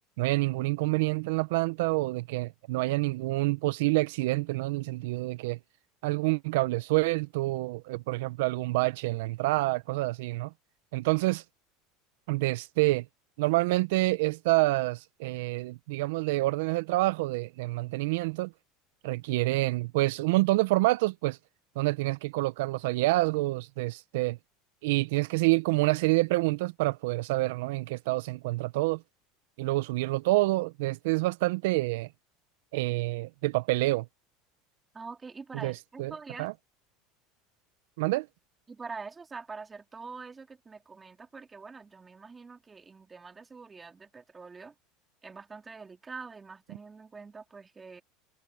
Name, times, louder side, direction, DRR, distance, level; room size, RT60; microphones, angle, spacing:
voice 1, 0.2-5.6 6.0-10.5 10.9-11.4 12.3-13.0 13.4-18.5 19.0-21.4 21.8-24.4 24.8-29.0 29.6-32.1 32.7-34.1 35.6-35.7 36.0-36.1 36.4-36.5 38.0-38.3, right 20 dB, 75° right, 0.6 m, -27 dB
voice 2, 34.9-36.5 38.7-44.7 45.2-48.0, right 4 dB, 20° right, 3.0 m, -45 dB
hypercardioid pair, 95°, 0 cm